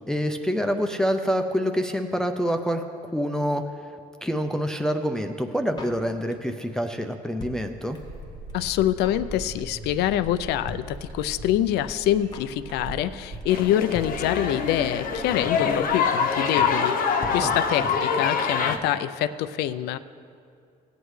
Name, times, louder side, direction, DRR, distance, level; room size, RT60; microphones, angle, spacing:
voice 1, 0.1-3.9 4.2-8.0 17.4-17.6, equal, 5° left, 5 dB, 0.5 m, -26 dB
Drum kit, 5.8-6.6 6.9-7.0 7.1-8.2 8.5-8.6 8.8-9.3 9.6-9.9 10.1-10.2 10.4-10.5 10.7-11.5 11.8-11.9 12.0-12.6 12.9-13.1 13.4-13.5 13.7-13.8 13.9-14.8 15.0-15.1 15.3-15.9 16.1-16.4 16.7-16.8 17.0-17.1 17.2-18.1 18.3-18.4 18.6-18.7, left 2 dB, 25° left, 0.9 m, -41 dB
sound 1, 7.9-16.0, right 2 dB, 70° right, 1.3 m, -41 dB
voice 2, 8.5-20.0, left 12 dB, 80° left, 13 dB, 0.4 m, -25 dB
sound 2, 13.5-18.8, left 6 dB, 55° left, 0.8 m, -25 dB
17.0 x 8.1 x 3.2 m, 2.4 s
cardioid pair, 110°, 17 cm